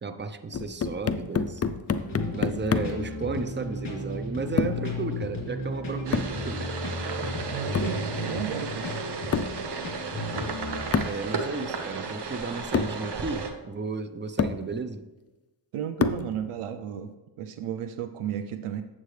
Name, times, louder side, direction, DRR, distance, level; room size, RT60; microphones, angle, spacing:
voice 1, 0.0-1.6 2.3-6.7 11.0-15.1, right 4 dB, 20° right, 9 dB, 0.6 m, -34 dB
sound 1, 0.5-3.1 4.6-4.9 6.1-6.4 7.7-8.0 9.3-9.6 10.9-11.2 12.2-12.3 12.7-13.0 13.9-14.0 14.4-14.7 16.0-16.4, left 5 dB, 30° left, 0.4 m, -28 dB
sound 2, 1.9-10.8, left 2 dB, 55° left, 2.9 m, -34 dB
sound 3, 6.1-13.5, right 4 dB, 55° right, 1.1 m, -34 dB
voice 2, 7.5-8.9 10.1-10.3 15.7-18.8, right 9 dB, 85° right, 8 dB, 0.6 m, -33 dB
8.3 x 7.5 x 3.2 m, 1.1 s
cardioid pair, 85°, 50 cm